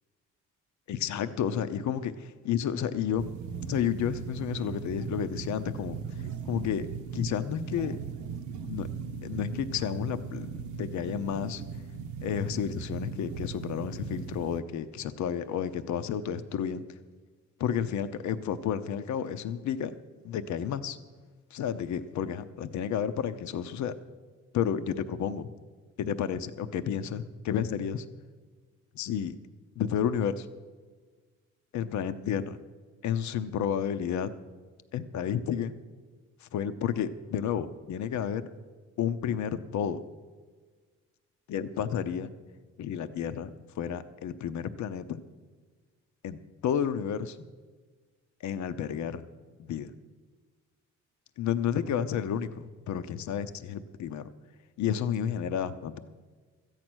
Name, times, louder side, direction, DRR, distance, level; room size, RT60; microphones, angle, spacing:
voice 1, 0.9-3.3 3.7-6.0 6.5-6.9 7.1-8.0 8.6-8.9 9.2-11.6 12.2-16.8 17.6-19.9 20.2-21.0 21.5-23.9 24.5-25.5 26.0-28.0 28.9-29.4 29.8-30.5 31.7-32.6 33.0-34.3 34.9-35.7 36.4-38.5 39.0-40.0 41.5-42.3 42.8-43.5 43.8-45.2 46.2-47.4 48.4-49.2 49.6-49.9 51.4-54.3 54.8-56.0, left 8 dB, 70° left, 11 dB, 0.7 m, -31 dB
sound 1, 3.2-14.6, right 6 dB, 80° right, 0.8 m, -38 dB
13.5 x 9.0 x 6.2 m, 1.4 s
cardioid pair, 90°, 30 cm